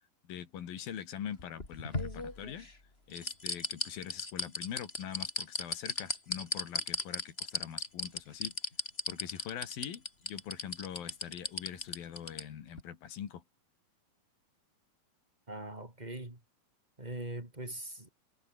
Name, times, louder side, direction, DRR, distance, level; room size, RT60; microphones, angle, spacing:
voice 1, 0.3-2.7 3.1-8.5 9.1-13.4, left 9 dB, 60° left, 4.0 m, -43 dB
sound 1, 1.4-2.7 3.1-12.4 12.8-12.9, left 2 dB, 15° left, 2.9 m, -35 dB
voice 2, 15.5-16.4 17.0-18.1, right 1 dB, 10° right, 3.9 m, -41 dB
omnidirectional pair, 5.0 m